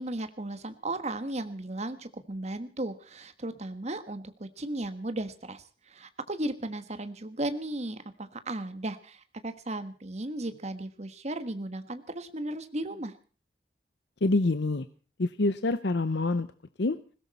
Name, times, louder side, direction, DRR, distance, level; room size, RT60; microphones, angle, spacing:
voice 1, 0.0-13.1, right 1 dB, 35° right, 10 dB, 1.4 m, -35 dB
voice 2, 14.2-14.9 15.2-16.5 16.8-17.0, left 2 dB, 65° left, 11 dB, 0.7 m, -26 dB
20.5 x 16.5 x 4.2 m, 0.39 s
head